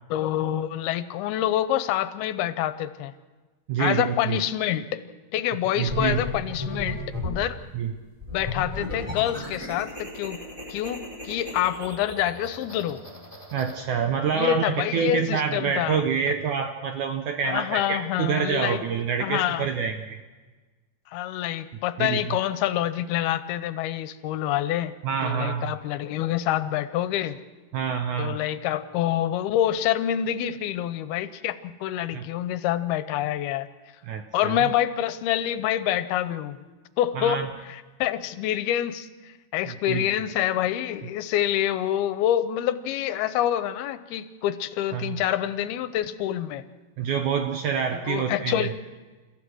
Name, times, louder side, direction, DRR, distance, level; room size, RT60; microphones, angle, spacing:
voice 1, 0.1-3.1 3.8-5.0 5.3-7.6 8.3-10.4 10.7-13.0 14.3-16.0 17.4-18.8 19.2-19.7 21.1-24.9 25.2-27.4 28.2-33.7 34.3-36.6 37.0-37.4 37.7-46.6 48.1-48.7, left 12 dB, 80° left, 13 dB, 2.7 m, -27 dB
voice 2, 3.7-4.4 5.8-6.2 7.7-7.9 13.5-20.2 22.0-22.4 25.0-25.7 27.7-28.4 32.1-32.3 34.0-34.7 37.2-37.5 39.7-40.1 44.9-45.2 47.0-48.7, right 7 dB, 75° right, 6 dB, 1.8 m, -27 dB
sound 1, 5.9-7.5 8.2-13.7, left 2 dB, 10° right, 4.6 m, -35 dB
30.0 x 15.0 x 6.2 m, 1.3 s
omnidirectional pair, 4.5 m